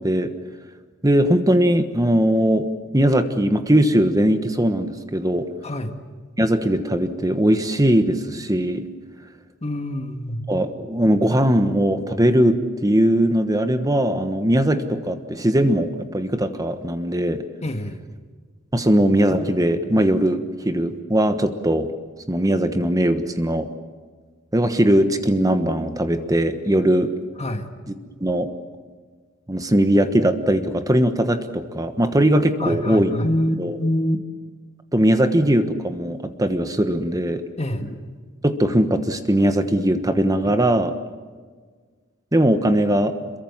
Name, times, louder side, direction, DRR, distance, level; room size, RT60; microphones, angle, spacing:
voice 1, 1.0-2.7 2.9-5.5 6.4-8.8 10.5-17.4 18.7-21.9 22.3-23.7 24.5-27.1 28.2-28.5 29.5-33.1 33.6-33.8 34.9-37.4 38.4-40.9 42.3-43.1, right 1 dB, 20° right, 8 dB, 1.2 m, -20 dB
voice 2, 5.6-6.0 9.6-10.4 17.6-18.0 27.4-27.7 32.6-34.2 37.6-38.0 40.4-40.5, left 1 dB, 35° left, 7 dB, 1.8 m, -25 dB
27.0 x 22.5 x 7.3 m, 1.5 s
head